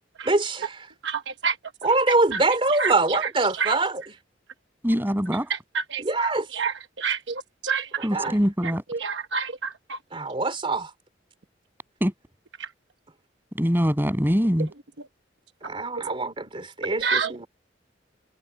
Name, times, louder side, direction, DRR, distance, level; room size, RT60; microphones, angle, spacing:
voice 1, 0.3-0.9 1.8-4.0 6.0-6.5 8.0-8.4 10.1-10.9 15.6-17.5, right 3 dB, 30° right, 3.1 m, -24 dB
voice 2, 1.0-1.5 2.8-2.9 3.6-3.7 5.9-6.0 6.5-6.7 7.0-7.2 7.6-7.8 8.9-9.5 9.9-10.0 17.0-17.3, right 5 dB, 75° right, 1.0 m, -26 dB
voice 3, 4.8-5.5 8.0-8.8 12.0-12.1 13.6-14.7, equal, 10° right, 7.3 m, -23 dB
head